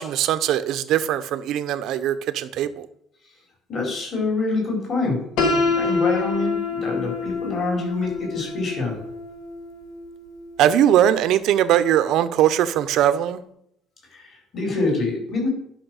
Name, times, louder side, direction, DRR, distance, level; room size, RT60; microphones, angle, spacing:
voice 1, 0.0-2.9 10.6-13.4, right 11 dB, 55° right, 12 dB, 0.7 m, -20 dB
voice 2, 3.7-5.2 5.7-9.0 14.1-15.5, left 3 dB, 35° left, -1 dB, 4.8 m, -26 dB
Piano, 5.4-11.2, left 4 dB, 75° left, 2.0 m, -26 dB
11.5 x 5.8 x 6.4 m, 0.74 s
cardioid pair, 170°, 0 cm